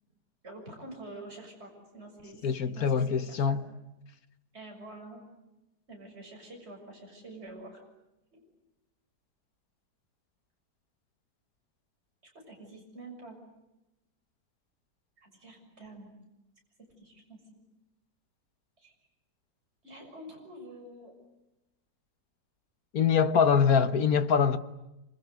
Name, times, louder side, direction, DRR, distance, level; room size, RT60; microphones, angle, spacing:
voice 1, 0.4-3.6 4.5-5.2 5.9-7.8 8.3-8.4 12.3-13.4 15.2-16.1 17.0-17.4 18.8-18.9 19.8-21.1 23.6-24.0, right 1 dB, 35° right, 7.0 m, -47 dB
voice 2, 2.4-3.6 22.9-24.6, left 6 dB, 55° left, 1.6 m, -24 dB
27.0 x 27.0 x 8.1 m
omnidirectional pair, 1.9 m